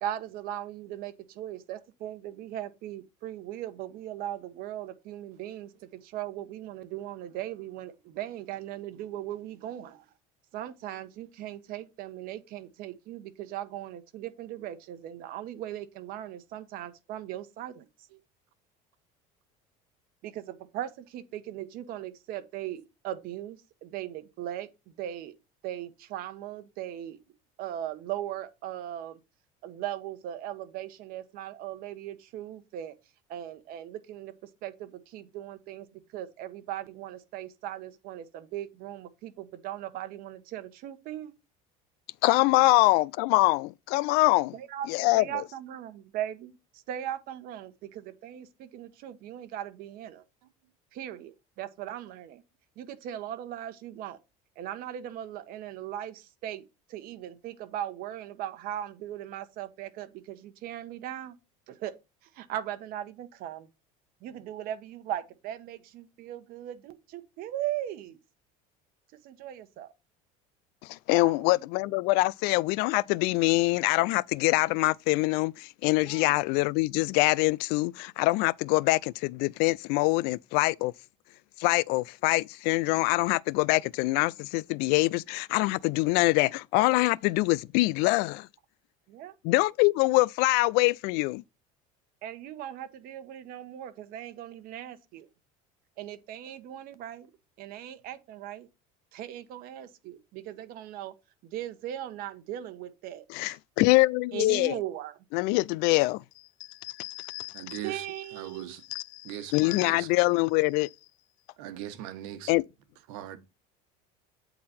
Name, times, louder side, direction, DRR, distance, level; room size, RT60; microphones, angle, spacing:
voice 1, 0.0-10.1 10.5-17.9 20.2-25.3 25.6-27.2 27.6-29.2 29.6-32.9 33.3-41.3 42.6-42.7 44.5-44.9 45.1-50.2 50.9-52.4 52.8-54.2 54.6-61.4 61.7-61.9 62.2-63.7 64.2-68.2 69.2-69.9 71.1-71.5 76.0-76.3 89.1-89.3 92.2-95.3 96.0-97.3 97.6-98.7 99.1-101.1 101.4-103.6 104.3-105.2 107.8-108.7, right 12 dB, 60° right, 1.2 m, -38 dB
voice 2, 42.2-44.5 44.9-45.2 70.8-80.9 81.6-88.5 89.4-91.4 103.3-104.7 105.3-106.2 106.7-107.8 108.9-110.9 112.5-112.6, left 21 dB, 65° left, 0.4 m, -24 dB
voice 3, 107.5-108.0 108.3-108.8 109.2-110.1 111.6-112.5 113.1-113.4, right 12 dB, 80° right, 1.3 m, -40 dB
8.5 x 4.0 x 4.2 m
cardioid pair, 130°, 17 cm